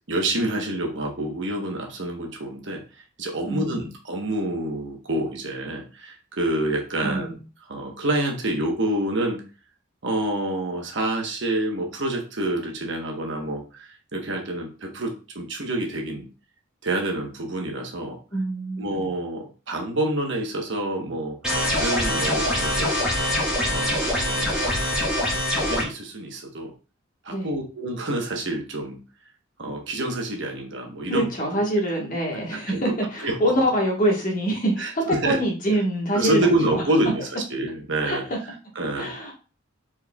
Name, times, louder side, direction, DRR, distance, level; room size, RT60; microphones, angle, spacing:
voice 1, 0.1-7.3 7.6-9.4 10.0-16.3 16.8-18.2 18.8-23.0 23.6-24.7 25.6-26.7 27.2-29.0 29.6-31.6 32.7-32.9 33.2-33.5 34.8-35.4 36.1-39.1, right 1 dB, 60° right, 1 dB, 1.0 m, -28 dB
voice 2, 3.5-3.9 7.0-7.4 18.3-19.1 27.3-27.5 31.1-36.8 38.0-38.2 39.0-39.3, right 1 dB, 40° left, -1 dB, 1.3 m, -25 dB
sound 1, 21.4-25.8, left 1 dB, 5° right, 1.5 m, -24 dB
4.5 x 4.3 x 2.3 m, 0.34 s
head